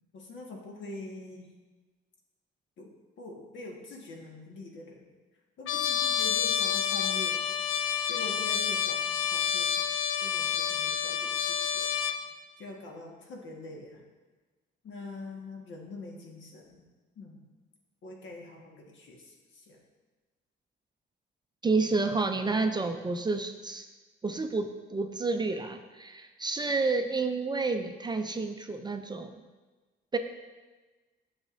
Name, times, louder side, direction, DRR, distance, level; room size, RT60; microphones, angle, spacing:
voice 1, 0.1-1.5 2.8-5.0 5.6-7.5 8.1-9.9 10.2-11.9 12.6-14.0 14.8-16.8 17.1-17.4 18.0-19.8, left 2 dB, 70° left, -1 dB, 1.5 m, -44 dB
Trumpet, 5.7-12.2, left 8 dB, 85° left, 0.5 m, -29 dB
voice 2, 21.6-23.9 24.2-29.4 30.1-30.2, right 3 dB, 20° right, 6 dB, 0.4 m, -30 dB
8.9 x 6.4 x 2.6 m, 1.3 s
cardioid pair, 90°, 20 cm